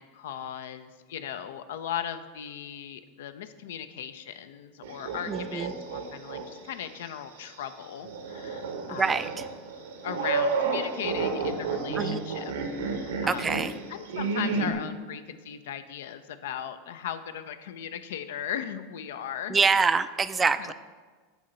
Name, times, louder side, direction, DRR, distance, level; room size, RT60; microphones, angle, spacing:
voice 1, 0.0-9.3 10.0-12.5 12.9-13.6 13.9-19.6 20.6-20.7, left 9 dB, 70° left, 11 dB, 0.4 m, -37 dB
sound 1, 4.8-6.4 6.9-7.0 8.0-14.7, right 4 dB, 75° right, 0.9 m, -31 dB
voice 2, 5.3-5.7 8.9-9.3 12.0-12.2 13.3-13.7 19.5-20.7, right 5 dB, 20° right, 12 dB, 0.3 m, -25 dB
8.2 x 2.8 x 5.6 m, 1.4 s
hypercardioid pair, 90°, 0 cm